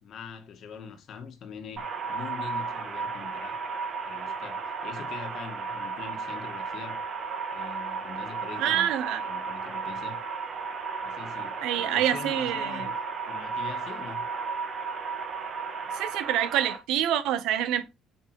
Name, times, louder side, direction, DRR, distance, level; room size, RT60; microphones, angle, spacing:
voice 1, 0.0-3.6 4.1-7.0 7.5-8.9 9.3-10.2 11.0-12.9 13.3-14.3, left 6 dB, 60° left, 1.8 m, -43 dB
sound 1, 1.8-16.8, right 5 dB, 40° right, 1.7 m, -34 dB
voice 2, 8.6-9.2 11.6-12.9 15.9-17.8, right 11 dB, 80° right, 1.1 m, -27 dB
8.6 x 5.2 x 3.2 m
cardioid pair, 110°, 0 cm